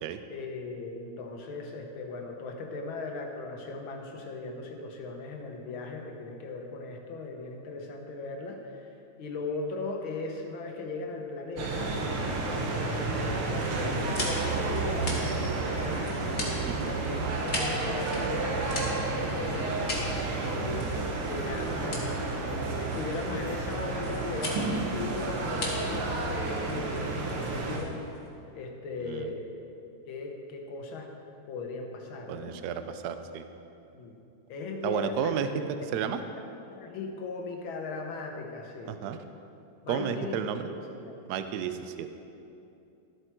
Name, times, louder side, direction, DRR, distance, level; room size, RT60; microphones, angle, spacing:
voice 1, 0.3-8.9 9.2-16.2 16.7-19.9 20.4-28.0 28.5-29.4 30.1-31.1 31.5-32.6 33.9-34.1 34.5-35.6 35.9-36.4 36.7-39.0 39.8-41.2, left 3 dB, 75° left, 2 dB, 1.9 m, -38 dB
sound 1, 11.6-27.8, right 3 dB, 90° right, 2.0 m, -31 dB
sound 2, 13.6-28.3, left 2 dB, 40° left, 1.8 m, -40 dB
voice 2, 32.3-33.5 34.8-35.5 35.9-36.2 39.0-39.2 39.9-40.6 41.3-42.1, right 8 dB, 75° right, 9 dB, 0.9 m, -32 dB
12.5 x 8.1 x 4.5 m, 2.7 s
omnidirectional pair, 2.2 m